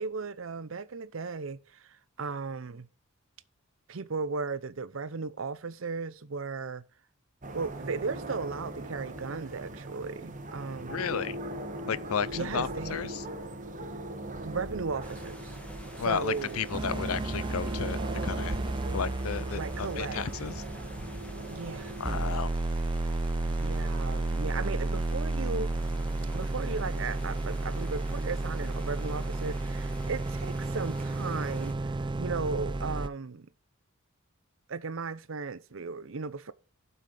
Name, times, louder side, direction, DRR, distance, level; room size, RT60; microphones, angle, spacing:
voice 1, 0.0-2.9 3.9-6.8 7.5-11.1 12.3-13.0 14.4-15.6 16.0-16.6 19.6-20.2 21.5-22.0 23.4-25.7 26.3-33.5 34.7-36.5, right 4 dB, 65° right, 0.7 m, -36 dB
sound 1, 7.4-22.3, right 1 dB, 35° right, 1.3 m, -39 dB
voice 2, 10.9-11.4 11.9-13.2 16.0-18.6 18.9-20.6 22.0-22.5, left 6 dB, 90° left, 0.6 m, -33 dB
sound 2, 15.0-31.7, equal, 5° left, 1.7 m, -50 dB
sound 3, 16.7-21.7 22.1-33.1, right 2 dB, 20° right, 0.4 m, -32 dB
12.0 x 5.7 x 5.0 m
head